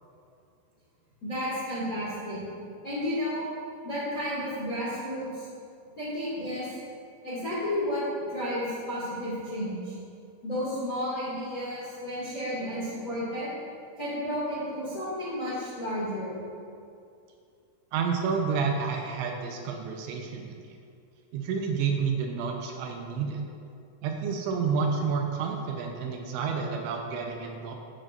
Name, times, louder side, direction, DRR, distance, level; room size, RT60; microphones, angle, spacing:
voice 1, 1.2-3.4 3.8-5.5 6.0-6.6 7.2-8.0 8.3-9.9 10.4-13.5 14.0-16.4, equal, 40° left, -9 dB, 1.2 m, -32 dB
voice 2, 17.9-20.6 21.3-23.4 24.0-27.8, right 5 dB, 80° right, 2 dB, 2.9 m, -29 dB
14.5 x 7.6 x 2.5 m, 2.5 s
omnidirectional pair, 5.5 m